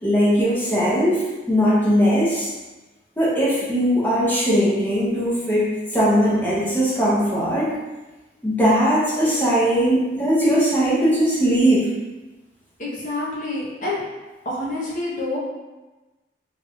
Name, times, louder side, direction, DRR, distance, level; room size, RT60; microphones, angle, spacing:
voice 1, 0.0-2.5 3.2-7.7 8.4-11.9, equal, 10° left, -8 dB, 0.8 m, -19 dB
voice 2, 12.8-14.0 14.4-15.4, left 2 dB, 40° left, -6 dB, 0.8 m, -27 dB
3.5 x 3.2 x 2.3 m, 1.1 s
head